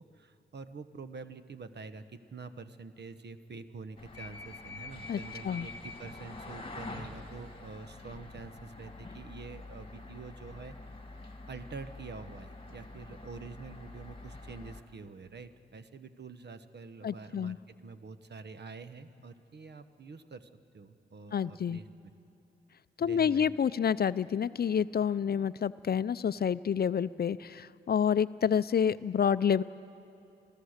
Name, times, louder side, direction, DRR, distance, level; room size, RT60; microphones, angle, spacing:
voice 1, 0.0-10.7 11.5-17.5 17.8-22.1 23.0-23.5, right 4 dB, 55° right, 11 dB, 1.0 m, -46 dB
sound 1, 4.0-14.8, left 3 dB, 25° left, 2.1 m, -46 dB
voice 2, 17.0-17.6 21.3-21.8 23.0-29.6, left 8 dB, 50° left, 16 dB, 0.5 m, -28 dB
27.0 x 15.5 x 6.5 m, 2.9 s
cardioid pair, 55°, 21 cm